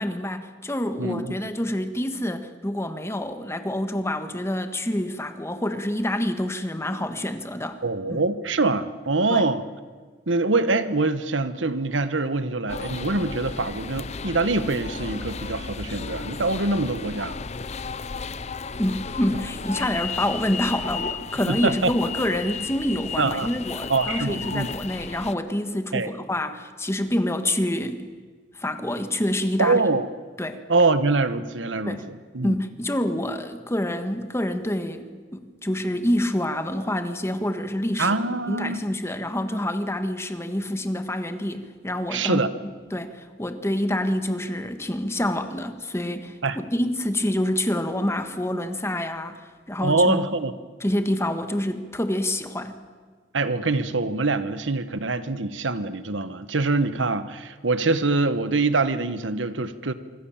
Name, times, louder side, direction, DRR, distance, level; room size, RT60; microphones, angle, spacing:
voice 1, 0.0-7.8 8.1-8.2 9.3-9.5 18.8-28.1 28.5-29.8 30.4-30.6 31.9-32.0 32.4-38.2 38.5-42.4 42.9-50.2 50.8-52.8, left 1 dB, 15° left, 8 dB, 1.6 m, -27 dB
voice 2, 1.0-1.3 7.8-9.7 10.3-17.4 21.5-21.9 23.2-23.5 23.9-24.7 25.9-26.1 29.6-30.1 30.7-32.6 38.0-38.8 42.1-42.5 46.4-46.6 49.8-50.5 53.3-59.9, right 3 dB, 90° right, 12 dB, 1.3 m, -24 dB
sound 1, 12.7-25.3, left 5 dB, 35° left, 0.7 m, -34 dB
25.5 x 25.0 x 7.4 m, 1.5 s
head